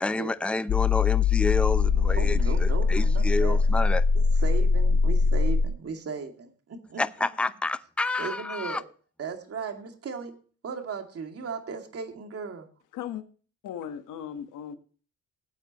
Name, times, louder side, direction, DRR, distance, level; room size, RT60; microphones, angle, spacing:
voice 1, 0.0-4.0 7.0-8.8, left 2 dB, 5° left, 0.6 m, -29 dB
sound 1, 0.7-5.7, left 4 dB, 55° left, 0.7 m, -22 dB
voice 2, 2.2-3.6 4.1-7.0 8.2-8.8 9.2-10.3 10.6-12.7, right 5 dB, 50° right, 2.5 m, -36 dB
voice 3, 12.9-13.2 13.6-14.8, left 9 dB, 85° left, 1.4 m, -37 dB
18.0 x 8.7 x 3.0 m
cardioid pair, 90°, 30 cm